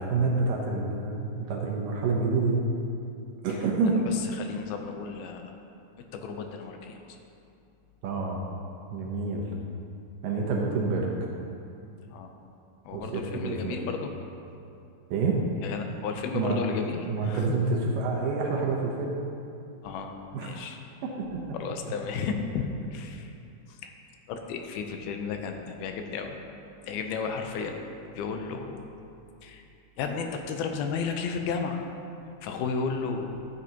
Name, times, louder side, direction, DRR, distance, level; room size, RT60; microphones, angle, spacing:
voice 1, 0.0-2.6 3.4-4.0 8.0-8.4 8.9-9.5 10.2-11.1 12.9-13.8 15.1-15.4 16.3-16.6 17.0-19.2 20.3-20.5 21.2-21.4, right 4 dB, 70° right, -1 dB, 2.3 m, -28 dB
voice 2, 4.4-5.6 6.1-7.2 12.1-12.3 12.9-14.1 15.6-17.5 19.8-21.0 21.5-23.3 23.7-23.9 24.3-26.4 26.8-27.8 28.1-28.8 29.4-29.6 30.0-31.9 32.4-33.4, left 5 dB, 80° left, 4 dB, 2.5 m, -33 dB
12.5 x 9.2 x 2.9 m, 2.6 s
omnidirectional pair, 4.4 m